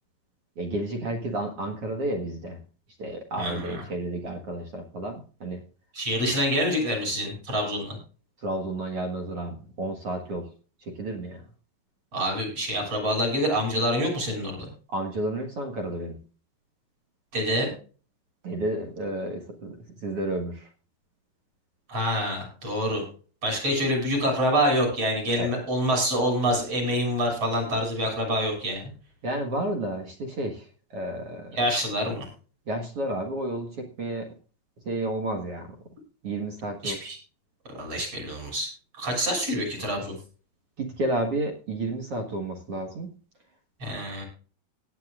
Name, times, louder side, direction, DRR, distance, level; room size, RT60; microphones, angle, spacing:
voice 1, 0.6-2.6 3.0-5.6 8.4-10.5 10.8-11.4 14.9-16.2 18.4-19.7 20.0-20.7 25.4-25.5 29.2-31.6 32.7-34.3 34.8-35.8 36.2-37.0 40.8-43.1, right 1 dB, 60° right, 3 dB, 1.5 m, -31 dB
voice 2, 3.4-3.8 5.9-8.0 12.1-14.7 17.3-17.7 21.9-23.0 23.4-28.9 31.5-32.3 36.8-37.2 37.7-38.7 39.0-40.2 43.8-44.2, equal, 35° right, 0 dB, 7.2 m, -26 dB
18.0 x 11.0 x 2.5 m, 0.38 s
omnidirectional pair, 5.2 m